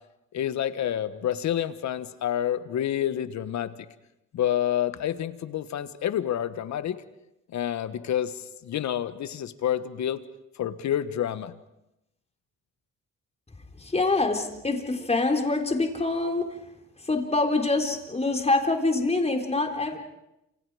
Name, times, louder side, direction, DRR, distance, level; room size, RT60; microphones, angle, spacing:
voice 1, 0.3-3.7 4.3-7.0 7.5-10.2 10.6-11.5, left 10 dB, 65° left, 13 dB, 1.4 m, -28 dB
voice 2, 13.8-16.6 17.0-20.0, left 3 dB, 20° left, 3 dB, 3.9 m, -25 dB
28.5 x 27.0 x 5.0 m, 0.88 s
cardioid pair, 90°, 30 cm